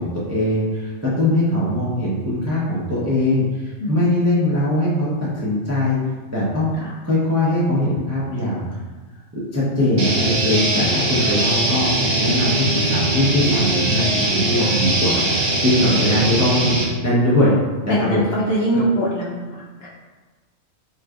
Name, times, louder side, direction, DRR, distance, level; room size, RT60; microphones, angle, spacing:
voice 1, 0.0-6.0 6.3-6.7 7.0-8.6 9.3-16.8 17.0-17.6 17.8-18.2, left 1 dB, 20° right, -8 dB, 0.4 m, -21 dB
voice 2, 3.8-4.1 6.8-6.9 11.3-11.4 17.9-19.9, right 1 dB, 65° left, -5 dB, 0.7 m, -23 dB
sound 1, 10.0-16.8, right 1 dB, 55° right, 0.9 m, -21 dB
3.7 x 3.1 x 2.4 m, 1.3 s
omnidirectional pair, 1.4 m